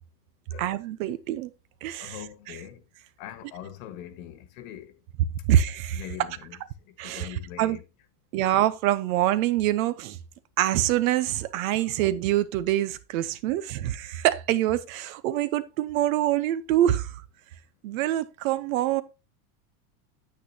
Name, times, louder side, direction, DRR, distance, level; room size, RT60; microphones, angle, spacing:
voice 1, 0.6-1.5 1.8-2.2 2.5-2.6 5.5-6.0 7.0-7.8 8.3-10.2 10.6-17.2 17.8-19.0, right 13 dB, 65° right, 1.0 m, -25 dB
voice 2, 2.0-2.8 3.2-4.9 5.9-6.6 7.0-7.8, left 10 dB, 65° left, 1.7 m, -42 dB
9.2 x 8.4 x 2.9 m
supercardioid pair, 140°, 45 cm